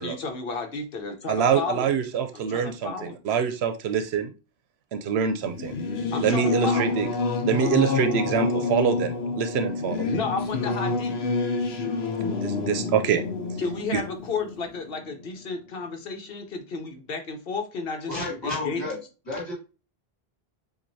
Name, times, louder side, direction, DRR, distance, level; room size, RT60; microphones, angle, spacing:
voice 1, 0.0-1.9 2.3-3.3 6.1-7.2 10.1-11.3 13.6-18.2 18.4-19.0, left 4 dB, 65° left, 5 dB, 1.1 m, -32 dB
voice 2, 1.3-4.3 4.9-5.7 6.2-7.1 7.4-10.1 12.4-13.2 13.9-14.0, right 7 dB, 85° right, 8 dB, 0.8 m, -25 dB
Singing / Musical instrument, 5.4-15.5, left 4 dB, 85° left, 0.9 m, -28 dB
voice 3, 18.1-19.0 19.3-19.5, left 2 dB, 25° left, -4 dB, 2.0 m, -31 dB
7.4 x 2.6 x 2.6 m, 0.31 s
omnidirectional pair, 1.0 m